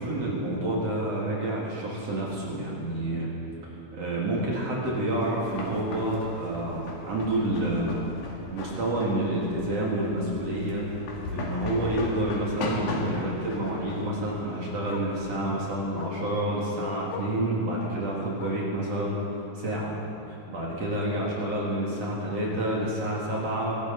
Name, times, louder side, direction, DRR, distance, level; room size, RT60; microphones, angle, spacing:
voice 1, 0.0-3.3 3.9-8.0 8.5-10.9 11.3-19.2 19.5-19.9 20.3-23.8, right 1 dB, 55° right, -4 dB, 3.1 m, -29 dB
sound 1, 5.0-15.4, left 2 dB, 85° left, 3.5 m, -37 dB
Bark, 5.3-5.5 5.9-6.0 6.4-6.5 6.8-6.9 8.3-8.4 10.9-11.0 11.8-12.1 12.8-13.1 14.3-14.4 14.8-15.2 15.9-16.3 17.0-17.4 18.3-18.8 19.8-19.9, left 6 dB, 60° left, 1.8 m, -42 dB
24.5 x 12.0 x 4.1 m, 2.9 s
omnidirectional pair, 3.6 m